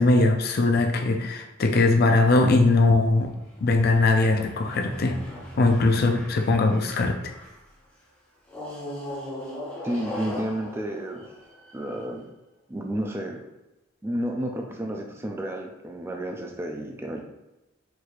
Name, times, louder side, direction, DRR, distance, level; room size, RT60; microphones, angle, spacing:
voice 1, 0.0-3.3 3.6-5.2 5.6-7.1, left 3 dB, 50° left, 4 dB, 0.4 m, -20 dB
sound 1, 3.0-7.7 8.5-12.1, left 1 dB, 10° left, 0.9 m, -39 dB
voice 2, 9.8-11.3 11.7-12.2 12.7-13.4 14.0-17.2, right 1 dB, 10° right, 2 dB, 0.3 m, -31 dB
4.5 x 3.1 x 2.4 m, 1.0 s
head